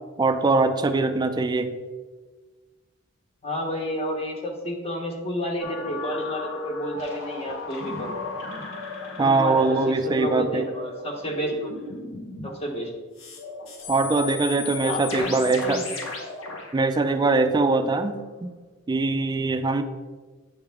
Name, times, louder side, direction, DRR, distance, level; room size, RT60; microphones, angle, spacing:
voice 1, 0.2-1.7 9.2-10.6 13.9-15.8 16.7-18.5 18.9-19.8, right 3 dB, 20° right, 9 dB, 0.3 m, -22 dB
voice 2, 3.4-8.2 9.2-9.8 10.0-11.9 12.4-12.9 14.8-15.8, equal, 30° left, 1 dB, 1.0 m, -31 dB
sound 1, 5.6-12.5 13.2-17.7 18.1-18.2, left 3 dB, 75° left, 0.9 m, -35 dB
9.3 x 3.4 x 3.4 m, 1.4 s
head